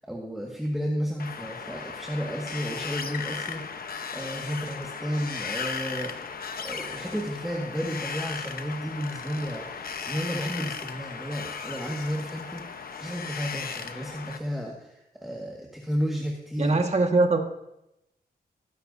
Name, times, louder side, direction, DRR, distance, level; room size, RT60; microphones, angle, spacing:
voice 1, 0.1-3.6 4.1-6.1 6.6-16.8, equal, ahead, -1 dB, 1.8 m, -32 dB
Wind, 1.2-14.4, left 5 dB, 60° left, 1.0 m, -36 dB
voice 2, 16.6-17.4, right 3 dB, 40° right, 4 dB, 1.7 m, -22 dB
20.0 x 10.5 x 2.7 m, 0.85 s
cardioid pair, 80°, 17 cm